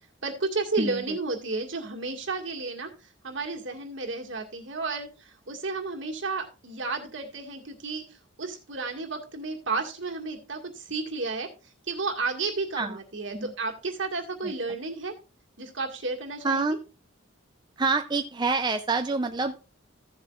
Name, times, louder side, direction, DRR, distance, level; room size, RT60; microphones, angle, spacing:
voice 1, 0.2-2.9 3.2-5.1 5.5-8.0 8.4-11.5 11.9-15.1 15.6-16.8, right 3 dB, 65° right, 2 dB, 1.9 m, -32 dB
voice 2, 0.8-1.2 12.8-13.0 13.3-13.5 14.4-14.5 16.4-16.8 17.8-19.6, right 3 dB, 20° right, 7 dB, 0.5 m, -27 dB
15.0 x 7.2 x 2.5 m, 0.32 s
head